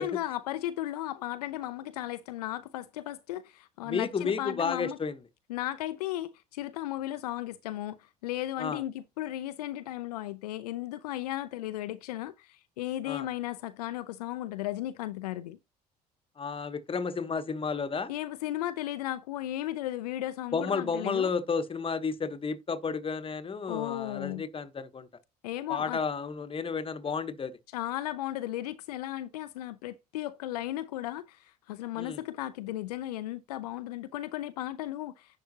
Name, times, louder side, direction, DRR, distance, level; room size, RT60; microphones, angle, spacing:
voice 1, 0.0-5.0 5.5-15.6 18.1-21.3 23.7-24.4 25.4-26.0 27.7-35.4, left 14 dB, 75° left, 0.5 m, -35 dB
voice 2, 3.9-5.1 8.6-8.8 13.1-13.3 16.4-18.1 20.5-25.1 25.7-27.6 32.0-32.2, left 5 dB, 25° left, 1.1 m, -32 dB
10.5 x 5.8 x 2.8 m
figure-of-eight pair, 55°, 20 cm